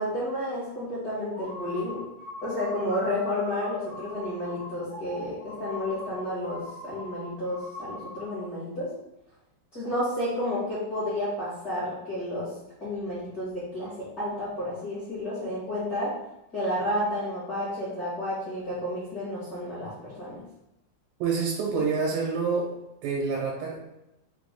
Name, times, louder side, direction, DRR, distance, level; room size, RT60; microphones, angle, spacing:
voice 1, 0.0-2.0 2.4-8.9 9.7-12.5 12.8-16.1 16.5-20.4, left 1 dB, 55° left, -10 dB, 1.0 m, -31 dB
sound 1, 1.3-8.5, left 2 dB, 80° left, 0.9 m, -42 dB
voice 2, 21.2-22.7 23.0-23.8, right 5 dB, 90° right, -3 dB, 2.7 m, -27 dB
5.8 x 2.1 x 3.6 m, 0.88 s
omnidirectional pair, 4.0 m